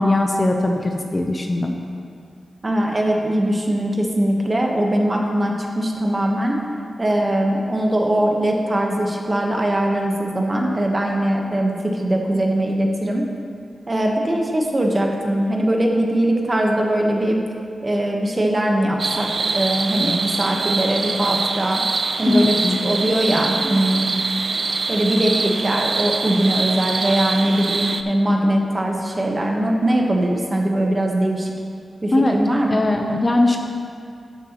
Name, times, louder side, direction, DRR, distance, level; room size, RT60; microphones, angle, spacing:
voice 1, 0.0-1.8 22.3-22.8 32.1-32.4 32.7-33.6, left 2 dB, 25° left, 3 dB, 0.6 m, -19 dB
voice 2, 2.6-6.6 7.0-13.3 13.9-17.4 17.8-21.8 22.2-22.5 22.8-24.2 24.9-31.5 32.0-32.8, right 1 dB, 25° right, 1 dB, 1.0 m, -21 dB
sound 1, 19.0-28.0, right 4 dB, 55° right, 0.4 m, -24 dB
11.5 x 7.8 x 3.0 m, 2.4 s
wide cardioid pair, 105°, 0 cm